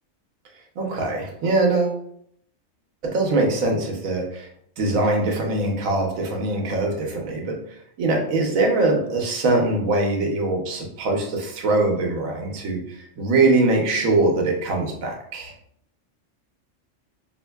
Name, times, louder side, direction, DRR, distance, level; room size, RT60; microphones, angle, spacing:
voice 1, 0.8-2.0 3.0-4.5 4.8-7.6 8.0-15.5, right 2 dB, 90° right, 1 dB, 1.2 m, -22 dB
4.1 x 2.6 x 2.3 m, 0.69 s
omnidirectional pair, 1.4 m